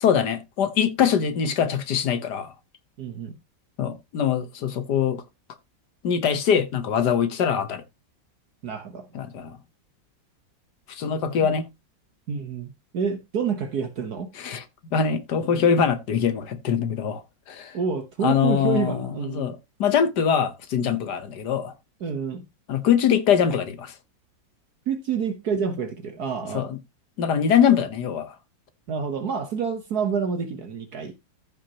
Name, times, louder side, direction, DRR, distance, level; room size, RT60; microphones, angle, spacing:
voice 1, 0.0-2.5 3.8-5.2 6.0-7.8 9.1-9.6 10.9-11.7 14.4-14.6 14.9-17.2 17.5-17.8 18.2-21.7 22.7-23.9 26.5-26.8 27.2-28.3, left 7 dB, 65° left, 1.6 m, -23 dB
voice 2, 3.0-3.3 8.6-9.1 11.4-11.5 12.3-14.3 17.7-19.5 22.0-22.4 24.9-26.7 28.9-31.1, right 6 dB, 60° right, 1.6 m, -28 dB
14.0 x 6.0 x 2.9 m
omnidirectional pair, 2.0 m